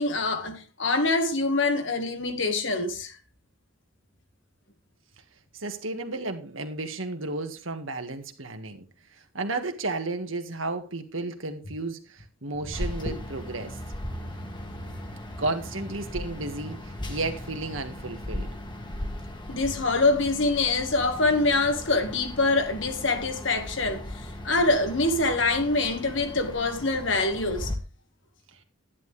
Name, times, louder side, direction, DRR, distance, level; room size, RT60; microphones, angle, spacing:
voice 1, 0.0-3.2 19.5-24.1 24.4-27.7, left 3 dB, 70° left, 1.9 m, -25 dB
voice 2, 5.5-8.8 9.3-13.8 15.4-18.5, right 2 dB, 85° right, 1.8 m, -33 dB
sound 1, 12.7-27.8, left 1 dB, 25° left, 1.6 m, -37 dB
11.0 x 10.5 x 3.4 m
head